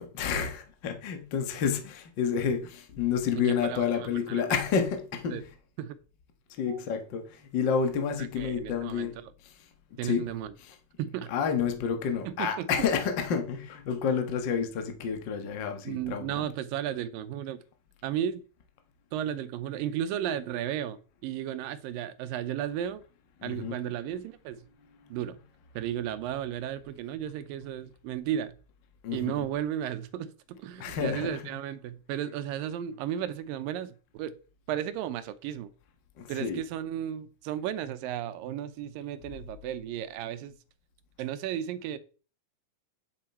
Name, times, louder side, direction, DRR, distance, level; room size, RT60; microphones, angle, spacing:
voice 1, 0.0-5.4 6.6-9.2 10.0-10.3 10.7-10.8 11.3-16.4 23.4-23.8 25.0-25.2 29.0-29.4 30.8-31.5 36.2-36.6, left 6 dB, 50° left, 1.5 m, -30 dB
voice 2, 3.3-4.6 5.3-5.4 5.8-6.0 6.6-6.8 8.2-9.3 10.0-10.5 11.0-11.3 12.3-12.9 15.9-17.6 18.0-18.4 19.1-23.0 23.4-24.6 25.1-25.4 25.8-28.5 29.1-34.4 34.7-35.7 36.3-40.5 41.2-42.0, right 10 dB, 80° right, 2.4 m, -34 dB
9.3 x 7.1 x 4.3 m
omnidirectional pair, 4.0 m